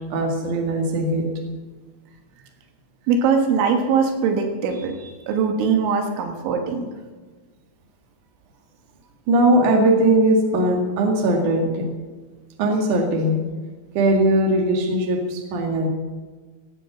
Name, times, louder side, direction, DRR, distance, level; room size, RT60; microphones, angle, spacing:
voice 1, 0.1-1.3 9.3-11.8 12.6-13.4 13.9-15.9, right 1 dB, 50° right, 2 dB, 3.0 m, -19 dB
voice 2, 3.1-6.9, right 5 dB, 85° right, 4 dB, 3.9 m, -21 dB
16.5 x 9.2 x 7.1 m, 1.3 s
omnidirectional pair, 5.3 m